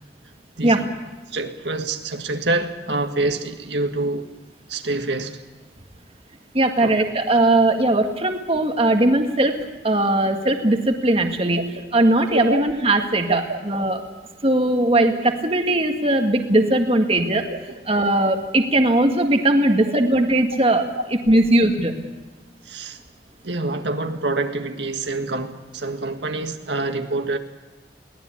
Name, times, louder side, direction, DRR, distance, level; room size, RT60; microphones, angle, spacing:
voice 1, 1.3-4.3 4.7-5.4 6.8-7.0 12.3-12.6 13.3-13.6 17.5-17.6 22.6-23.0 23.4-27.4, right 2 dB, 75° right, 5 dB, 1.7 m, -26 dB
voice 2, 6.5-9.6 9.8-11.7 11.9-14.0 14.4-17.5 17.9-20.9 21.3-22.0, right 1 dB, 30° right, 5 dB, 1.8 m, -19 dB
22.5 x 18.5 x 8.5 m, 1.2 s
head